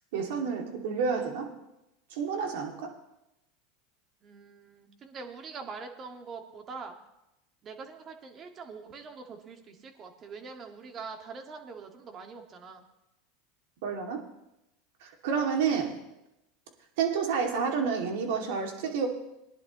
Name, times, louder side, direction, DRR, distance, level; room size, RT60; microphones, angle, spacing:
voice 1, 0.1-1.5 2.1-2.9 13.8-14.2 15.0-16.0 17.0-19.1, right 6 dB, 70° right, 2 dB, 2.4 m, -29 dB
voice 2, 4.2-7.0 7.6-12.8, right 4 dB, 35° right, 4 dB, 1.9 m, -44 dB
20.0 x 10.5 x 3.1 m, 0.90 s
hypercardioid pair, 95°, 0 cm